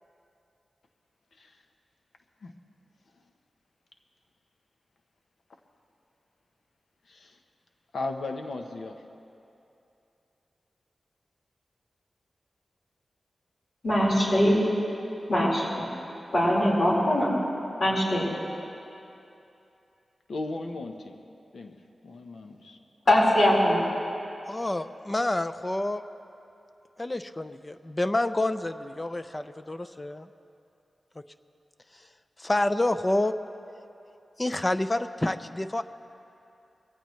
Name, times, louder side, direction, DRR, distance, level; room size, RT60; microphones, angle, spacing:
voice 1, 7.9-9.0 20.3-21.1 21.5-21.8 22.0-22.8, left 2 dB, 80° left, 4 dB, 1.0 m, -36 dB
voice 2, 13.8-14.6 15.3-15.9 16.3-17.3 17.8-18.3 23.1-23.8, left 1 dB, 65° left, -5 dB, 4.5 m, -22 dB
voice 3, 24.5-26.0 27.0-30.3 32.4-33.4 34.4-35.8, left 1 dB, 25° left, 10 dB, 0.5 m, -28 dB
22.0 x 16.0 x 3.2 m, 2.7 s
wide cardioid pair, 70°, 0 cm